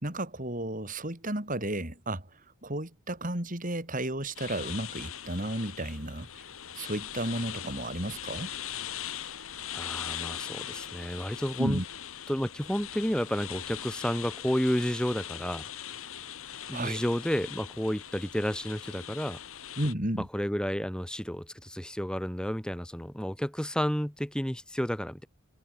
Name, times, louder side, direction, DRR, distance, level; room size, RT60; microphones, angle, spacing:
voice 1, 0.0-2.3 2.6-6.4 6.8-8.5 11.6-11.8 16.7-17.0 19.8-20.3, right 1 dB, 40° right, 4.1 m, -33 dB
sound 1, 4.4-19.9, left 10 dB, 70° left, 1.9 m, -41 dB
voice 2, 9.7-11.8 12.3-15.7 16.7-19.4 20.3-25.3, equal, 5° left, 1.9 m, -31 dB
head